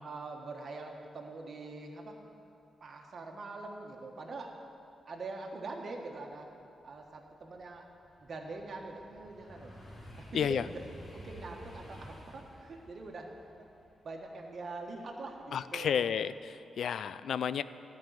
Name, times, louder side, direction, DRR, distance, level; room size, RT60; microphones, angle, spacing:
voice 1, 0.0-2.2 2.8-4.6 5.1-6.5 6.8-7.9 8.2-9.8 10.2-10.8 11.1-13.3 13.6-13.7 14.0-16.1, right 3 dB, 50° right, 1 dB, 1.4 m, -44 dB
sound 1, 5.9-6.0 6.5-15.6 16.0-16.4, equal, 40° left, 2.8 m, -52 dB
voice 2, 15.5-17.6, left 8 dB, 70° left, 15 dB, 0.3 m, -31 dB
13.0 x 5.4 x 9.1 m, 2.7 s
cardioid pair, 120°, 0 cm